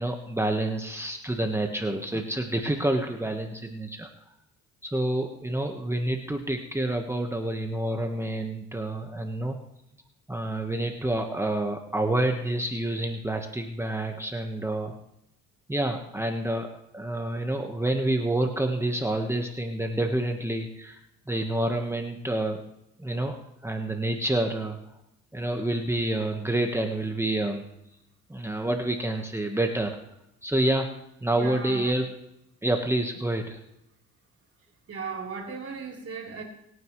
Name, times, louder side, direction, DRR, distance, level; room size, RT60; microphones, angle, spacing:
voice 1, 0.0-4.1 4.8-9.5 10.3-14.9 15.7-16.7 16.9-21.0 21.3-22.6 23.0-23.4 23.6-24.8 25.3-27.6 28.3-30.0 30.4-30.9 31.2-32.1 32.6-33.6, right 1 dB, 10° right, 3 dB, 1.3 m, -28 dB
voice 2, 31.3-32.0 34.9-36.4, right 5 dB, 50° right, -1 dB, 3.8 m, -36 dB
25.5 x 9.5 x 3.2 m, 0.83 s
cardioid pair, 90°, 30 cm